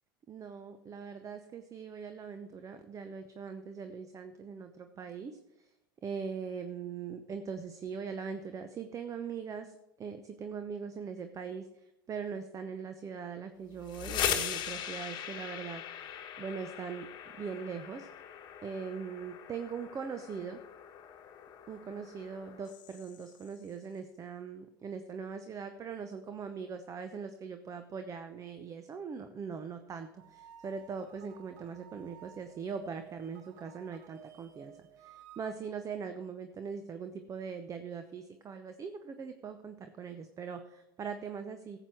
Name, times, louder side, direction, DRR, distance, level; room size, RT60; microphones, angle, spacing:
voice 1, 0.3-5.7 6.0-17.1 17.4-18.1 18.6-20.6 21.7-41.8, right 6 dB, 30° right, 8 dB, 0.8 m, -41 dB
sound 1, 13.7-23.5, left 10 dB, 45° left, 1.3 m, -40 dB
sound 2, 30.2-35.5, right 10 dB, 65° right, 1.0 m, -55 dB
14.5 x 8.0 x 4.6 m, 0.89 s
hypercardioid pair, 85°, 11 cm